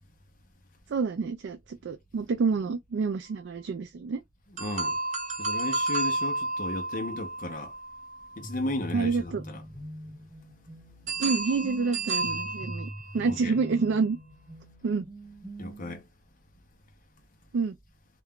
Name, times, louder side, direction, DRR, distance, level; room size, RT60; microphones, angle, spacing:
voice 1, 0.9-4.2 8.9-9.4 11.2-14.2 14.8-15.1 17.5-17.7, right 4 dB, 70° right, 0.4 m, -28 dB
voice 2, 4.5-5.0 5.4-7.8 8.4-9.6 11.1-11.2 13.3-13.5 15.6-16.1, left 1 dB, 45° left, 0.7 m, -35 dB
sound 1, 4.6-8.6 11.1-13.4, right 2 dB, 40° right, 1.0 m, -32 dB
sound 2, 8.4-16.0, right 1 dB, 10° right, 0.8 m, -43 dB
2.4 x 2.2 x 3.4 m
head